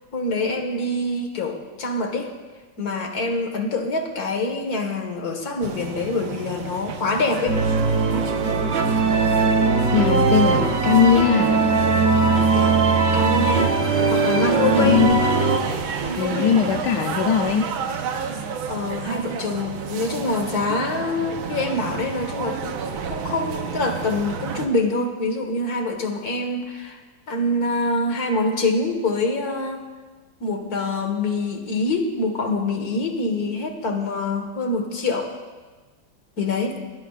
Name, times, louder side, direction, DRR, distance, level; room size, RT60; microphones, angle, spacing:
voice 1, 0.1-2.3 2.8-7.6 7.9-8.3 12.5-12.8 13.1-13.8 14.1-15.1 16.0-16.7 18.7-22.8 23.1-27.0 27.3-29.8 30.4-35.3 36.4-36.8, left 2 dB, 50° left, 4 dB, 2.1 m, -25 dB
sound 1, 5.6-24.7, right 6 dB, 75° right, 1.8 m, -31 dB
sound 2, 7.5-15.6, right 4 dB, 45° right, 1.0 m, -20 dB
voice 2, 9.9-11.6 14.8-15.2 16.2-17.7, left 7 dB, 65° left, 4 dB, 1.2 m, -19 dB
23.0 x 18.0 x 2.5 m, 1.3 s
omnidirectional pair, 2.2 m